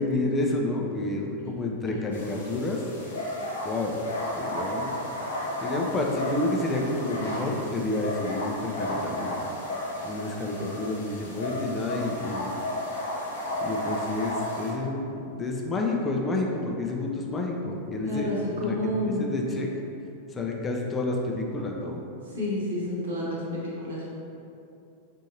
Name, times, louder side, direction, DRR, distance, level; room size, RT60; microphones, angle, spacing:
voice 1, 0.0-2.8 3.6-4.0 4.4-5.0 5.6-9.4 10.0-12.6 13.6-18.3 18.6-18.8 19.0-19.7 20.3-22.0, left 2 dB, 20° left, 0 dB, 0.5 m, -29 dB
sound 1, 2.1-14.7, left 1 dB, 70° left, 0.8 m, -33 dB
voice 2, 18.0-19.4 22.3-24.1, left 1 dB, 60° right, -6 dB, 1.1 m, -30 dB
5.7 x 2.6 x 2.8 m, 2.7 s
figure-of-eight pair, 90°, 0 cm